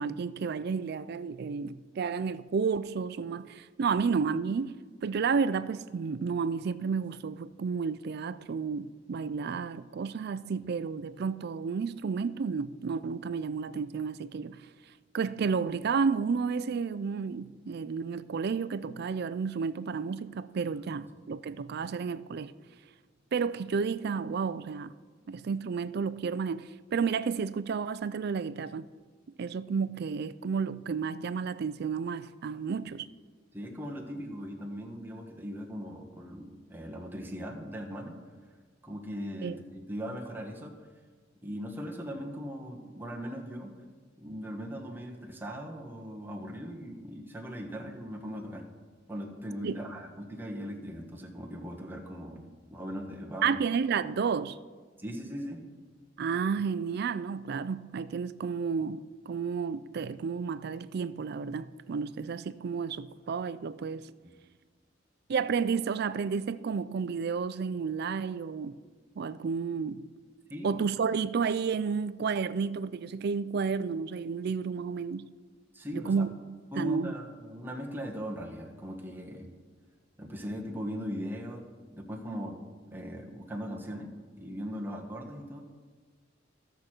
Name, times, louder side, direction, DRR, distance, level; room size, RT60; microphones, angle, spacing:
voice 1, 0.0-4.8 5.0-14.7 15.1-22.5 23.3-24.9 25.3-28.9 29.4-33.1 39.4-39.6 49.6-49.8 53.4-54.6 56.2-64.1 65.3-68.8 69.2-70.0 70.6-75.3 75.9-77.1, right 5 dB, 55° right, 0.4 m, -31 dB
voice 2, 33.5-38.2 38.8-40.8 41.4-43.7 44.2-48.6 49.1-53.6 55.0-55.6 70.5-70.8 75.7-76.3 76.7-79.5 80.2-82.6 82.9-85.6, equal, 10° right, 1.3 m, -39 dB
15.5 x 6.3 x 4.4 m
head